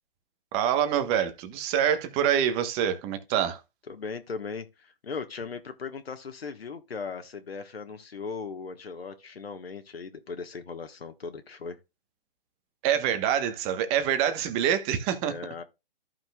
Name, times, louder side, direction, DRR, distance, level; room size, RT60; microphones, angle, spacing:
voice 1, 0.5-3.6 12.8-15.3, right 9 dB, 20° right, 1.1 m, -26 dB
voice 2, 3.9-11.8 15.2-15.6, left 5 dB, 80° left, 1.4 m, -38 dB
14.0 x 5.9 x 2.3 m
hypercardioid pair, 145°, 30 cm